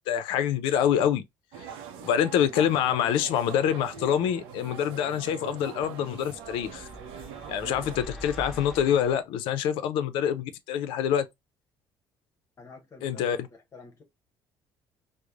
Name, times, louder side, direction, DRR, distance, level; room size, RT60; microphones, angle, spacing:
voice 1, 0.1-1.2 1.6-1.7 2.0-6.9 7.5-11.3 13.0-13.4, left 9 dB, 85° left, 0.4 m, -26 dB
sound 1, 1.5-8.0, right 7 dB, 90° right, 0.5 m, -42 dB
sound 2, 6.3-9.2, equal, ahead, 1.1 m, -43 dB
voice 2, 12.6-14.0, left 2 dB, 35° left, 0.8 m, -49 dB
3.0 x 2.0 x 2.3 m
cardioid pair, 125°, 9 cm